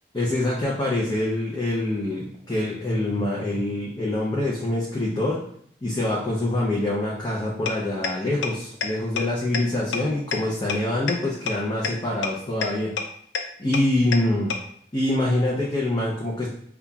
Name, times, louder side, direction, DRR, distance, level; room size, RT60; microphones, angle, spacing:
voice 1, 0.1-5.4 5.8-12.9 13.6-14.5 14.9-16.5, left 1 dB, 25° left, -5 dB, 0.5 m, -25 dB
sound 1, 7.7-7.8 8.0-8.1 8.4-8.5 8.8-8.9 9.2-9.3 9.5-9.6 9.9-10.0 10.3-10.4 10.7-10.8 11.1-11.2 11.5-11.6 11.8-11.9 12.2-12.3 12.6-12.7 13.0-13.1 13.3-13.4 13.7-13.8 14.1-14.2 14.5-14.6, left 6 dB, 85° left, 0.4 m, -25 dB
5.4 x 2.3 x 2.3 m, 0.64 s
head